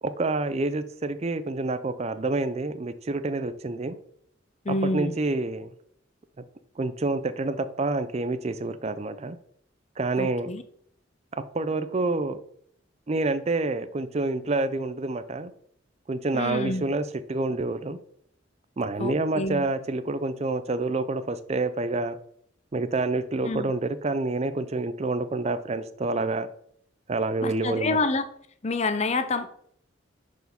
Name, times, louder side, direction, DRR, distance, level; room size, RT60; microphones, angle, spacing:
voice 1, 0.0-4.0 4.8-5.7 6.8-9.4 10.0-10.5 11.4-12.4 13.1-15.5 16.1-18.0 18.8-22.2 22.7-26.5 27.1-28.0, right 2 dB, 35° right, 12 dB, 0.5 m, -28 dB
voice 2, 4.6-5.2 10.2-10.6 16.3-16.9 19.0-19.7 23.4-23.7 27.4-28.2 28.6-29.5, left 3 dB, 35° left, 10 dB, 0.6 m, -28 dB
6.2 x 4.6 x 5.2 m, 0.66 s
head